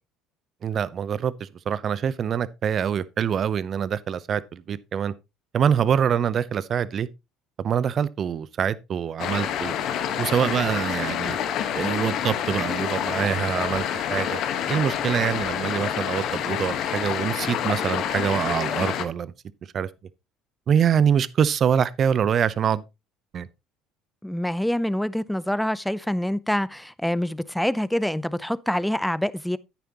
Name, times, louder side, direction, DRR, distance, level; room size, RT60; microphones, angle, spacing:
voice 1, 0.6-5.1 5.5-7.1 7.6-9.7 10.2-11.4 11.7-14.4 14.7-19.3 19.7-19.9 20.7-22.9 23.3-23.5, right 8 dB, 45° right, 0.7 m, -25 dB
sound 1, 9.2-19.0, left 9 dB, 60° left, 1.3 m, -27 dB
voice 2, 24.2-29.6, left 1 dB, 5° left, 0.6 m, -26 dB
10.0 x 9.2 x 3.0 m
hypercardioid pair, 70°, 0 cm